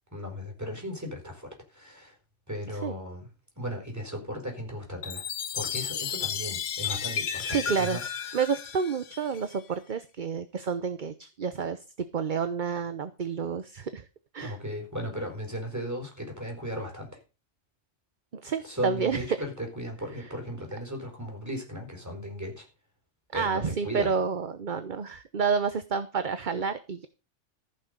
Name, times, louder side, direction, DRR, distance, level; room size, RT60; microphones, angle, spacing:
voice 1, 0.1-2.2 2.5-3.3 3.6-8.1 14.4-17.2 18.6-22.6 23.3-24.1, equal, 15° right, 2 dB, 4.6 m, -36 dB
Chime, 5.0-9.6, left 8 dB, 90° left, 1.2 m, -33 dB
voice 2, 7.5-8.0 8.3-14.0 14.3-14.6 18.3-19.2 23.3-27.1, right 6 dB, 45° right, 11 dB, 1.0 m, -29 dB
15.0 x 6.2 x 6.7 m, 0.31 s
omnidirectional pair, 1.2 m